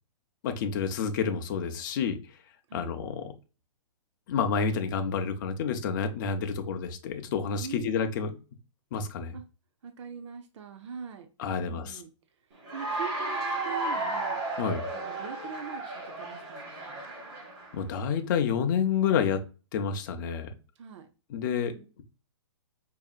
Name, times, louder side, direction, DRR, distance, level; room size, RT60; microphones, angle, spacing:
voice 1, 0.4-2.2 2.7-3.3 4.3-8.3 8.9-9.4 11.4-12.0 14.6-14.8 17.7-19.4 19.7-20.5 21.3-21.7, left 6 dB, 40° left, 0.6 m, -29 dB
voice 2, 7.6-8.0 9.3-9.4 9.8-11.3 11.6-12.1 12.7-14.4 14.9-17.1 20.8-21.1 21.5-21.9, right 6 dB, 70° right, 0.6 m, -43 dB
Cheering / Applause, 12.6-17.8, right 2 dB, 45° right, 2.1 m, -33 dB
4.9 x 2.7 x 2.4 m
hypercardioid pair, 155°, 16 cm